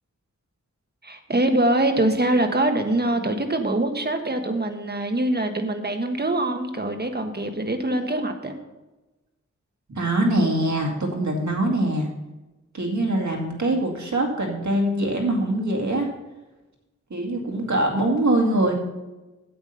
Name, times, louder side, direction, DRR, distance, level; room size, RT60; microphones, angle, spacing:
voice 1, 1.0-8.6, right 1 dB, 35° right, 5 dB, 1.4 m, -24 dB
voice 2, 9.9-12.1 12.7-16.1 17.1-18.7, right 1 dB, 70° right, 1 dB, 2.3 m, -23 dB
9.0 x 8.3 x 5.6 m, 1.1 s
wide cardioid pair, 70°, 30 cm